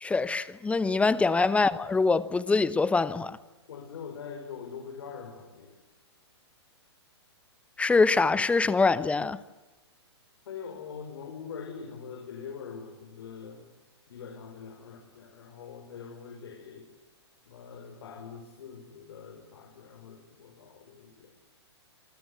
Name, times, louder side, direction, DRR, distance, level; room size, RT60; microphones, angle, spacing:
voice 1, 0.0-3.4 7.8-9.4, left 4 dB, 10° left, 1.0 m, -24 dB
voice 2, 3.7-5.8 10.5-13.7 14.1-16.9 17.5-21.3, left 6 dB, 65° left, 5.5 m, -43 dB
26.5 x 26.0 x 8.2 m
hypercardioid pair, 125°, 14 cm